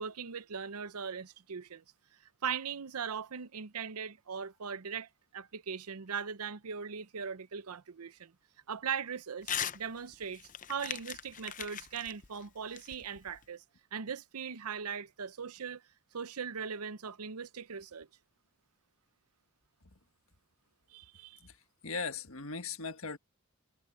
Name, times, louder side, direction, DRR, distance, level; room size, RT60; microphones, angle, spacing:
voice 1, 0.0-1.8 2.4-8.3 8.7-13.6 13.9-15.8 16.1-18.1 20.9-21.4, right 6 dB, 90° right, 0.7 m, -39 dB
Crumpling crinkling / Tearing, 9.4-9.8 10.1-13.4, left 9 dB, 35° left, 0.7 m, -39 dB
voice 2, 21.8-23.2, left 4 dB, 65° left, 1.6 m, -38 dB
head